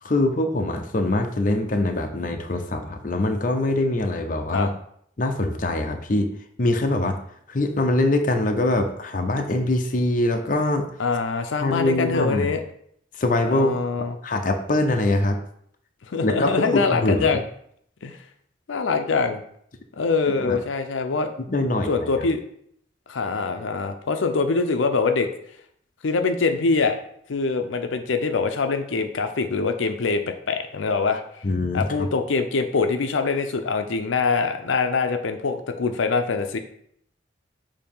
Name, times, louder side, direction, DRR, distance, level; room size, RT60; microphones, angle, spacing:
voice 1, 0.0-4.7 5.2-6.3 6.6-7.2 7.5-10.9 11.6-12.5 13.2-15.4 16.2-17.4 20.4-20.6 21.5-22.1 31.4-32.1, left 2 dB, 45° left, 5 dB, 0.6 m, -23 dB
voice 2, 11.0-12.6 13.5-14.1 16.1-17.4 18.0-18.2 18.7-19.4 20.0-21.3 21.9-22.4 23.1-25.3 26.0-27.0 27.3-31.4 31.7-36.6, left 4 dB, 90° left, 7 dB, 0.6 m, -24 dB
6.8 x 2.8 x 5.4 m, 0.67 s
head